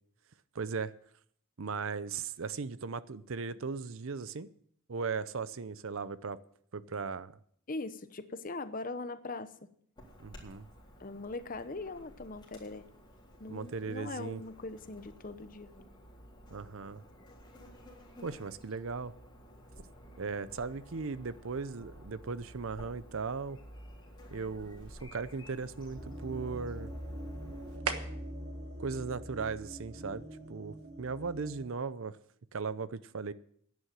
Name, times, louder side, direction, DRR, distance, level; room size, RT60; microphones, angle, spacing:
voice 1, 0.5-0.9 1.6-4.5 4.9-6.4 6.7-7.4 10.2-10.7 13.5-14.4 16.5-17.0 18.2-19.1 20.2-23.6 24.3-26.9 28.8-32.2 32.5-33.3, right 5 dB, 65° right, 16 dB, 0.6 m, -37 dB
voice 2, 7.7-9.7 11.0-12.9 13.4-15.7, left 3 dB, 40° left, 12 dB, 0.8 m, -41 dB
Chirp tweet / Buzz, 10.0-27.8, equal, 20° left, 3.9 m, -53 dB
sound 1, 22.3-30.2, right 6 dB, 90° right, 1.4 m, -47 dB
sound 2, 26.0-31.7, equal, 45° right, 3.1 m, -43 dB
11.5 x 9.6 x 7.5 m, 0.65 s
head